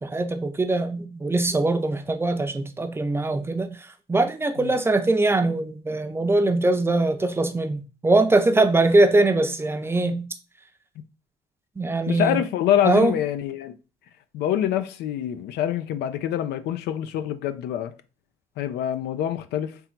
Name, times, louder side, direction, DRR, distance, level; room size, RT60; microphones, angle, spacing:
voice 1, 0.0-3.7 4.1-10.2 11.8-12.4 12.8-13.1, right 2 dB, 15° right, 0.5 m, -22 dB
voice 2, 12.1-13.7 14.3-17.9 18.6-19.8, left 11 dB, 80° left, 0.5 m, -25 dB
3.7 x 2.9 x 4.4 m
cardioid pair, 110°, 17 cm